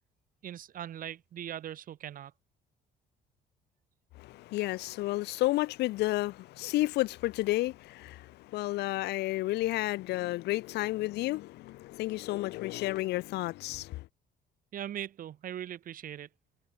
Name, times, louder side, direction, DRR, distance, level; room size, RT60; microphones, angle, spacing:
voice 1, 0.4-2.3 14.7-16.3, right 10 dB, 55° right, 2.3 m, -40 dB
voice 2, 4.1-14.1, left 18 dB, 80° left, 1.3 m, -31 dB
cardioid pair, 110°, 17 cm